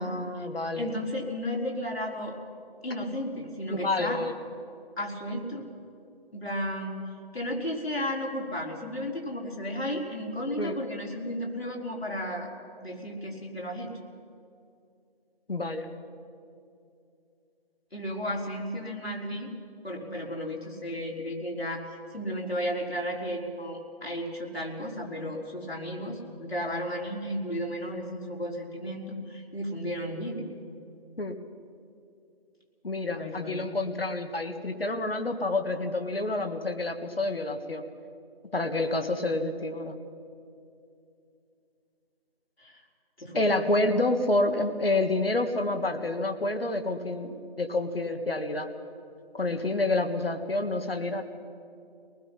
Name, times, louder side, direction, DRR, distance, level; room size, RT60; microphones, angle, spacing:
voice 1, 0.0-0.9 3.7-4.3 10.6-10.8 15.5-15.9 31.2-31.4 32.8-37.8 38.5-40.0 43.4-48.7 49.3-51.2, left 2 dB, 70° left, 6 dB, 1.8 m, -28 dB
voice 2, 0.8-2.4 2.8-4.2 5.0-5.7 6.3-7.0 7.3-12.5 12.8-13.9 17.9-19.5 19.8-21.8 22.1-30.4 33.1-33.6 42.6-42.8 43.2-43.4, equal, 85° left, -2 dB, 4.6 m, -33 dB
24.5 x 19.5 x 5.8 m, 2.5 s
figure-of-eight pair, 165°, 30 cm